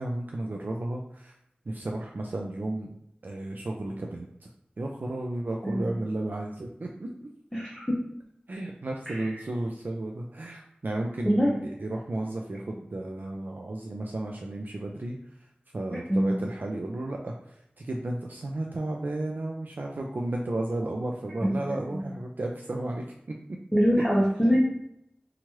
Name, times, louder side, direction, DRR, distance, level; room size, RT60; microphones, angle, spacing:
voice 1, 0.0-1.3 1.7-2.9 3.2-4.5 4.8-7.3 8.5-15.2 15.7-23.0 23.5-23.6 24.0-24.1, right 1 dB, 65° right, 0 dB, 0.3 m, -33 dB
voice 2, 7.5-7.9 9.1-9.2 11.3-11.5 15.9-16.3 21.4-21.5 21.9-22.0 23.7-24.6, equal, 5° left, -5 dB, 0.7 m, -24 dB
2.9 x 2.3 x 2.9 m, 0.76 s
wide cardioid pair, 55°, 3 cm